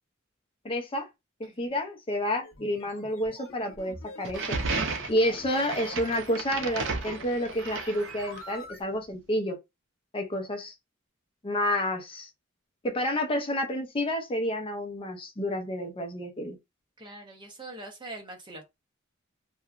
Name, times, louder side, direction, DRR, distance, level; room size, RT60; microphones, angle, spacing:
voice 1, 0.6-1.1 1.4-4.5 5.1-9.6 10.1-10.7 11.4-12.3 12.8-16.6, left 1 dB, 25° left, 0.5 m, -29 dB
voice 2, 1.4-1.7 17.0-18.6, right 2 dB, 25° right, 0.6 m, -43 dB
sound 1, 2.4-8.8, left 2 dB, 80° left, 0.8 m, -47 dB
sound 2, 4.2-8.6, right 4 dB, 65° right, 0.6 m, -34 dB
2.8 x 2.2 x 2.4 m
head